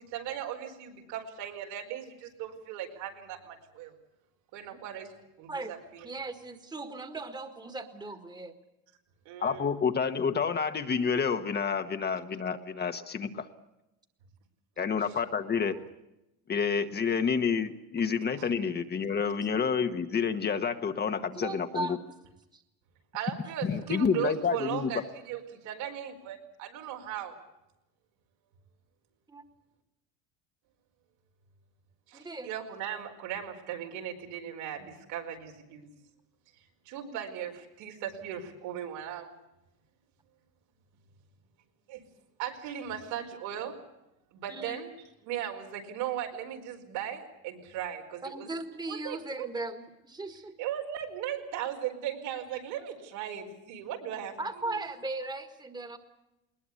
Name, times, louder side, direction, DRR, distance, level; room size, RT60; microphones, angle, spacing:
voice 1, 0.0-3.9 4.5-5.1 5.4-6.0 9.2-9.7 15.1-15.2 23.1-27.4 32.1-35.9 36.8-39.3 41.9-42.0 42.4-43.8 44.3-44.9 45.2-48.5 48.9-49.5 50.6-54.4 54.6-54.8, right 10 dB, 80° right, 2 dB, 4.8 m, -37 dB
voice 2, 6.0-8.5 15.7-15.9 21.3-22.1 22.5-22.6 29.3-29.4 32.1-32.5 37.0-37.2 44.5-44.8 48.2-50.6 54.4-56.0, right 2 dB, 10° right, 8 dB, 1.8 m, -38 dB
voice 3, 9.4-13.5 14.8-15.8 16.5-21.9 23.6-24.9, left 6 dB, 25° left, 8 dB, 1.3 m, -29 dB
20.5 x 20.5 x 8.4 m, 0.93 s
cardioid pair, 135°, 40 cm